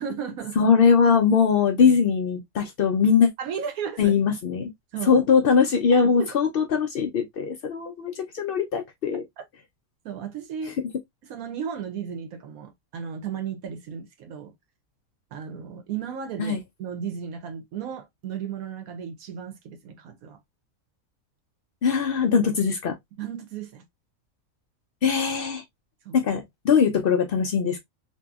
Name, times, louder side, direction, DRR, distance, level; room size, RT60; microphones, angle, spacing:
voice 1, 0.0-0.6 1.8-2.0 3.4-4.2 4.9-5.2 5.9-6.3 10.0-10.8 11.2-14.5 15.3-20.4 23.2-23.8 26.0-26.2, right 7 dB, 75° right, 1.1 m, -34 dB
voice 2, 0.6-3.3 4.0-4.7 5.0-9.2 16.4-16.6 21.8-23.0 25.0-25.6 26.1-27.8, left 6 dB, 85° left, 0.5 m, -21 dB
2.7 x 2.6 x 2.3 m
omnidirectional pair, 1.5 m